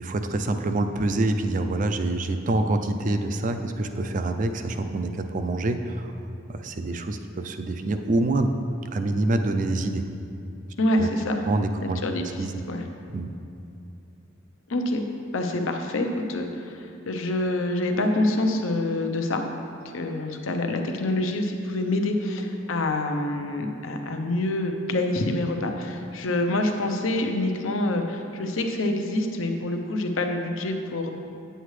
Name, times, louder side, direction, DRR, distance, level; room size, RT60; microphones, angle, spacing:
voice 1, 0.0-6.2 6.5-8.5 8.9-10.1 11.0-11.1 11.4-12.0 12.4-12.5 13.1-13.3, right 2 dB, 40° right, 7 dB, 0.4 m, -26 dB
voice 2, 10.8-11.4 11.8-12.8 14.7-15.0 15.3-19.4 19.9-31.1, left 1 dB, 85° left, 4 dB, 0.7 m, -26 dB
9.2 x 7.8 x 3.2 m, 2.6 s
head